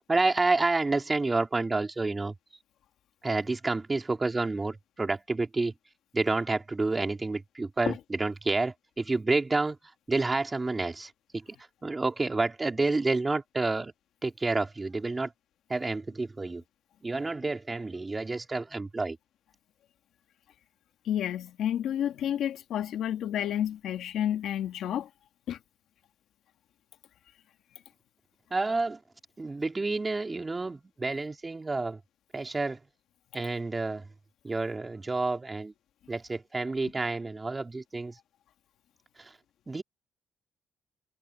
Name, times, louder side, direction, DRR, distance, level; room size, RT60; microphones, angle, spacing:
voice 1, 0.1-2.3 3.2-5.7 6.1-9.8 10.1-11.4 11.8-13.9 14.2-15.3 15.7-16.6 17.0-19.2 28.5-29.0 29.4-32.0 32.3-32.8 33.3-34.0 34.4-35.7 36.1-38.1 39.7-39.8, right 3 dB, 25° right, 3.2 m, -29 dB
voice 2, 21.0-25.1 25.5-25.6, left 10 dB, 75° left, 2.1 m, -30 dB
cardioid pair, 90°, 0 cm